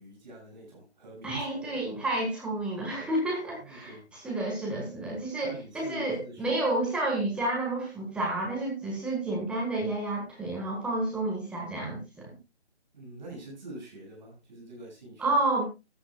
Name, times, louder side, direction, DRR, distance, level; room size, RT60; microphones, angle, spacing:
voice 1, 0.0-1.8 3.6-4.1 5.4-6.6 12.9-15.3, right 1 dB, 40° right, -2 dB, 7.2 m, -45 dB
voice 2, 1.2-3.9 4.2-12.3 15.2-15.6, right 2 dB, 5° right, -2 dB, 1.6 m, -30 dB
14.5 x 11.5 x 2.4 m, 0.24 s
figure-of-eight pair, 155°, 33 cm